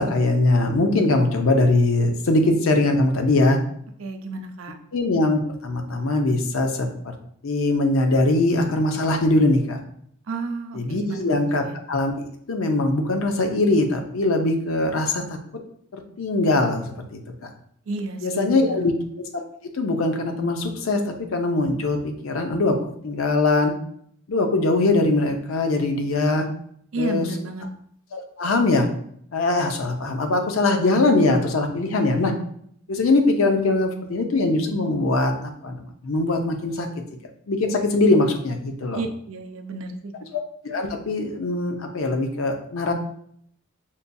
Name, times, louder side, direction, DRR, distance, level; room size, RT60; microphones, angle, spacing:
voice 1, 0.0-3.6 4.9-6.9 7.4-9.8 10.7-11.6 11.9-12.2 12.5-15.4 15.9-17.5 18.2-18.9 19.3-19.4 19.7-23.7 24.3-26.5 27.0-27.3 28.1-28.9 29.3-32.3 32.9-35.8 36.0-36.9 37.5-39.0 40.3-42.9, left 2 dB, 90° left, 5 dB, 0.6 m, -21 dB
voice 2, 4.0-4.8 10.3-11.8 17.9-18.8 26.9-27.7 38.9-40.1, right 2 dB, 80° right, 5 dB, 0.5 m, -31 dB
5.4 x 2.6 x 2.2 m, 0.65 s
head